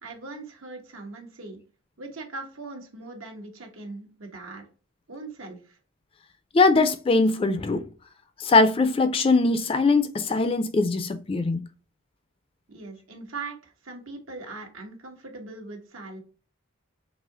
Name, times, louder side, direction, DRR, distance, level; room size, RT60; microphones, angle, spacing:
voice 1, 0.0-1.6 2.0-4.7 5.1-5.8 12.7-16.2, right 3 dB, 90° right, 1.2 m, -40 dB
voice 2, 6.5-7.8 8.4-11.6, left 3 dB, 25° left, 0.4 m, -21 dB
4.1 x 2.8 x 3.8 m
head